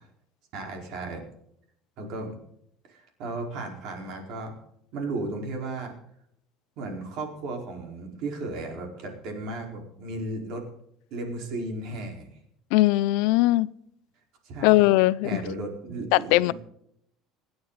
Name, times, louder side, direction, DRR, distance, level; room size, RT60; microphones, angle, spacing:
voice 1, 0.5-1.2 2.0-2.4 2.9-4.5 4.9-5.9 6.8-10.6 11.1-12.3 14.4-14.9 15.2-16.5, right 2 dB, 50° right, 2 dB, 4.6 m, -35 dB
voice 2, 12.7-13.7 14.6-15.4 16.1-16.5, left 18 dB, 70° left, 19 dB, 0.5 m, -20 dB
26.5 x 9.6 x 4.1 m, 0.73 s
cardioid pair, 170°, 0 cm